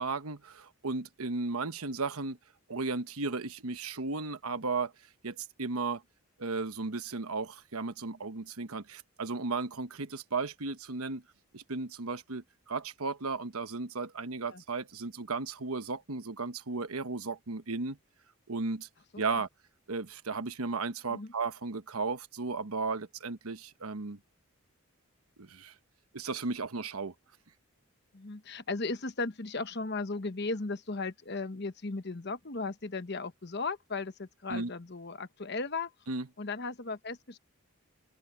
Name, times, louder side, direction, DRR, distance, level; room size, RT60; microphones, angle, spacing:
voice 1, 0.0-2.4 2.7-4.9 5.2-6.0 6.4-11.2 11.5-18.0 18.5-18.9 19.2-19.5 19.9-24.2 25.4-25.7 26.1-27.1 34.5-34.7 36.1-36.3, right 4 dB, 85° right, 1.2 m, -35 dB
voice 2, 28.1-35.9 36.4-37.4, left 3 dB, 50° left, 1.0 m, -36 dB
head